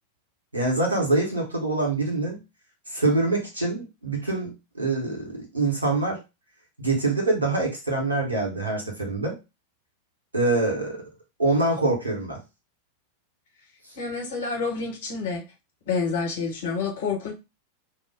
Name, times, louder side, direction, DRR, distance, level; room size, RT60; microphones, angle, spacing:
voice 1, 0.5-2.4 2.9-6.2 6.8-9.4 10.3-11.0 11.4-12.4, right 2 dB, 80° right, 0 dB, 1.6 m, -25 dB
voice 2, 13.9-15.4 15.9-17.3, left 5 dB, 60° left, 1 dB, 1.2 m, -28 dB
2.9 x 2.2 x 4.1 m, 0.25 s
figure-of-eight pair, 90°, 0 cm